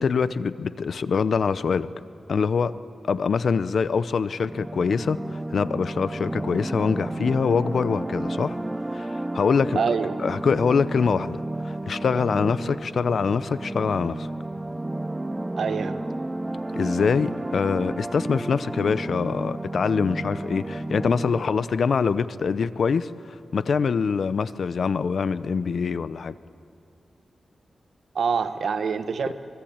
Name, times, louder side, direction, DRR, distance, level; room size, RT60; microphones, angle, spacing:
voice 1, 0.0-1.9 2.3-2.7 3.0-8.6 8.9-14.3 16.8-26.3, left 5 dB, 65° left, 15 dB, 0.7 m, -24 dB
sound 1, 4.4-21.7, right 1 dB, 15° right, 0.5 m, -32 dB
voice 2, 9.7-10.2 15.6-16.0 28.1-29.3, right 6 dB, 70° right, 10 dB, 1.2 m, -25 dB
24.5 x 21.0 x 8.8 m, 2.5 s
wide cardioid pair, 125°, 0 cm